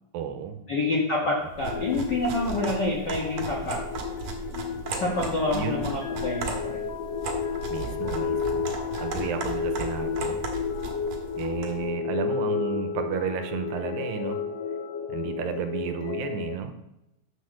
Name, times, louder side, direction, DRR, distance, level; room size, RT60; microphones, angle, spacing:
voice 1, 0.1-0.7 1.2-1.3 5.5-5.8 7.7-8.7 9.0-10.4 11.4-14.4 15.1-16.7, right 7 dB, 85° right, 7 dB, 2.5 m, -32 dB
voice 2, 0.7-3.8 5.0-6.8, left 2 dB, 65° left, -2 dB, 1.0 m, -27 dB
sound 1, 1.5-11.8, right 4 dB, 55° right, 2.1 m, -36 dB
sound 2, 1.6-16.6, left 6 dB, 85° left, 1.4 m, -32 dB
7.5 x 6.6 x 6.4 m, 0.89 s
omnidirectional pair, 4.1 m